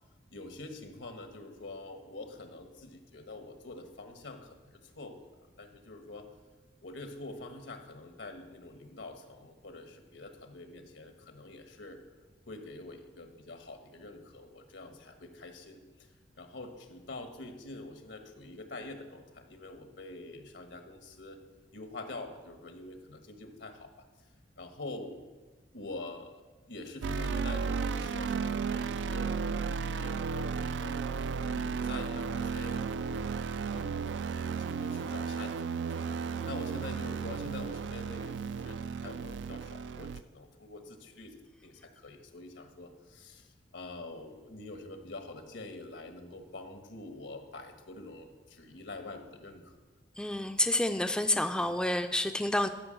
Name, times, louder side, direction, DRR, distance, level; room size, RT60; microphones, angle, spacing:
voice 1, 0.3-5.3 5.6-6.3 6.8-12.0 12.5-16.1 16.3-21.4 21.7-24.0 24.6-25.2 25.7-26.4 26.7-31.0 31.4-33.3 33.6-36.0 36.5-41.3 41.6-49.7, left 2 dB, 85° left, 5 dB, 1.4 m, -45 dB
sound 1, 27.0-40.2, right 5 dB, 75° right, 0.4 m, -34 dB
voice 2, 50.2-52.7, left 1 dB, 5° left, 7 dB, 0.4 m, -29 dB
12.5 x 5.9 x 7.6 m, 1.2 s
head